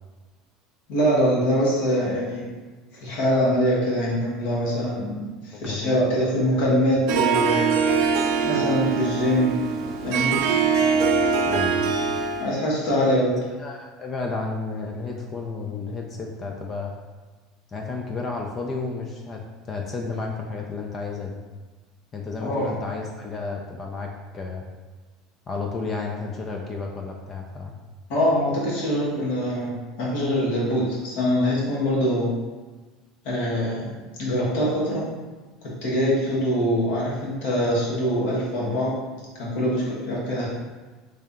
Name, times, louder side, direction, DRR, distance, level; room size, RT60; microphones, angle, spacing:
voice 1, 0.9-2.5 3.0-7.7 8.0-8.2 8.4-9.6 10.0-10.4 12.4-13.3 22.4-22.7 28.1-32.3 33.2-35.1 35.8-39.0 39.3-40.5, equal, 75° left, -5 dB, 1.4 m, -23 dB
voice 2, 5.5-6.3 6.5-6.7 7.8-8.0 11.5-11.9 13.6-16.9 17.7-21.4 22.1-24.6 25.5-27.7, left 4 dB, 30° left, 1 dB, 0.4 m, -32 dB
Harp, 7.1-12.5, right 5 dB, 65° right, 0.4 m, -23 dB
3.3 x 2.8 x 3.5 m, 1.3 s
supercardioid pair, 120°, 0 cm